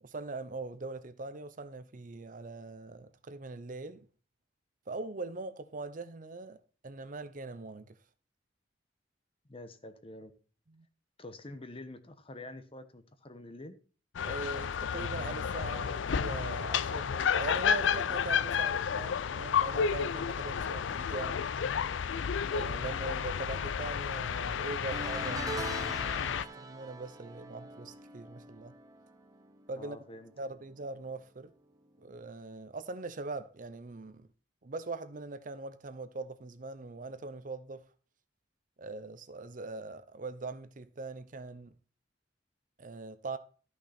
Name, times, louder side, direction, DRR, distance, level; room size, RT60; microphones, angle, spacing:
voice 1, 0.0-4.1 4.9-6.6 6.8-8.0 10.7-10.9 14.2-21.4 22.5-26.1 26.6-28.8 29.7-30.0 30.4-31.5 32.0-34.3 34.6-37.9 38.8-41.7 42.8-43.4, right 3 dB, 45° right, 0.7 m, -41 dB
voice 2, 9.5-10.3 11.2-13.8 29.8-30.3, left 2 dB, 30° left, 1.0 m, -47 dB
sound 1, 14.2-26.5, left 7 dB, 80° left, 0.4 m, -31 dB
sound 2, 24.9-30.3 30.6-30.9 32.2-32.3, right 3 dB, 20° right, 0.9 m, -44 dB
13.0 x 5.9 x 4.3 m
head